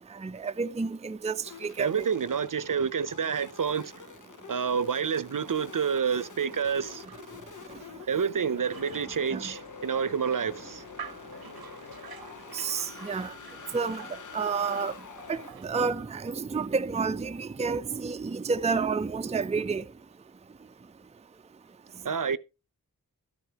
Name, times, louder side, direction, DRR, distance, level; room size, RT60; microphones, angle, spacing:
voice 1, 0.2-1.3 1.6-2.0 9.3-9.4 12.5-13.3 13.7-14.0 14.3-14.9 15.3-19.8, right 5 dB, 20° right, 0.4 m, -30 dB
sound 1, 1.4-15.5, left 6 dB, 55° left, 0.6 m, -47 dB
voice 2, 1.8-4.0 4.5-7.0 8.1-10.9 22.0-22.4, right 6 dB, 60° right, 0.7 m, -28 dB
sound 2, 6.6-16.0, right 6 dB, 90° right, 0.8 m, -50 dB
13.0 x 10.5 x 2.9 m
wide cardioid pair, 50°, 36 cm